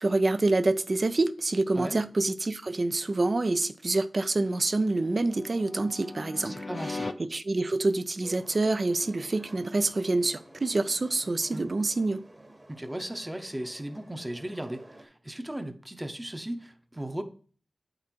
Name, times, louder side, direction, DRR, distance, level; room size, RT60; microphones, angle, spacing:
voice 1, 0.0-12.2, right 2 dB, 55° right, 0.5 m, -27 dB
sound 1, 4.3-7.1 10.1-11.3, left 3 dB, 55° left, 0.6 m, -41 dB
voice 2, 6.4-7.1 11.5-11.6 12.7-17.2, right 1 dB, 20° right, 0.8 m, -36 dB
sound 2, 8.2-15.1, right 1 dB, 35° right, 1.3 m, -52 dB
8.4 x 3.9 x 4.5 m
wide cardioid pair, 55°, 0 cm